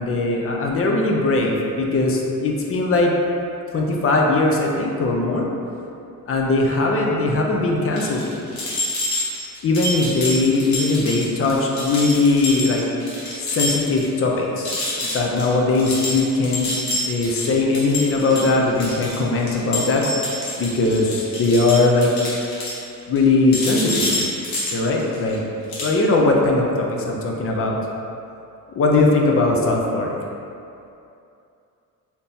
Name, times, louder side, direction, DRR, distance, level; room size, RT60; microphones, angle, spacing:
voice 1, 0.0-3.1 3.7-5.4 6.3-8.4 9.6-12.8 13.5-16.7 17.0-20.0 20.6-22.1 23.1-24.3 24.7-25.4 25.8-27.8 28.8-30.2, left 2 dB, 40° left, -1 dB, 0.4 m, -20 dB
sound 1, 8.0-14.1 14.4-14.5 14.7-23.2 23.5-25.3 25.7-26.0, left 1 dB, 80° left, 1.0 m, -27 dB
3.5 x 2.8 x 2.6 m, 2.7 s
cardioid pair, 130°, 36 cm